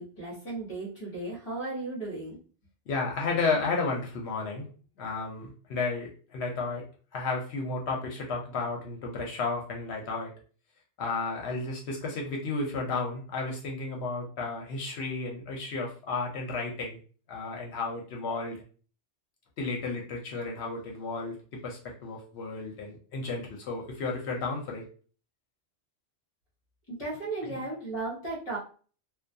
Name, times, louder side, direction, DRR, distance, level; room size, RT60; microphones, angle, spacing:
voice 1, 0.0-2.4 26.9-28.6, right 2 dB, 30° left, -5 dB, 0.8 m, -35 dB
voice 2, 2.9-4.7 5.0-6.8 7.1-10.3 11.0-17.0 17.3-18.6 19.6-24.8, left 3 dB, 70° left, 0 dB, 0.8 m, -33 dB
2.2 x 2.2 x 2.5 m, 0.40 s
omnidirectional pair, 1.2 m